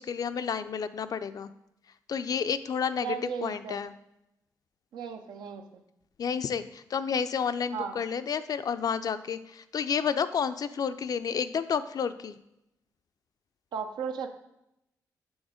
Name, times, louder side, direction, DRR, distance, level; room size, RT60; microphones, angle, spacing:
voice 1, 0.0-1.5 2.1-3.2 3.4-3.9 6.2-12.4, left 7 dB, 60° left, 12 dB, 0.4 m, -30 dB
voice 2, 3.0-3.8 4.9-5.8 7.7-7.9 13.7-14.3, right 7 dB, 85° right, 6 dB, 0.5 m, -35 dB
6.3 x 3.5 x 5.0 m, 0.86 s
supercardioid pair, 55°, 7 cm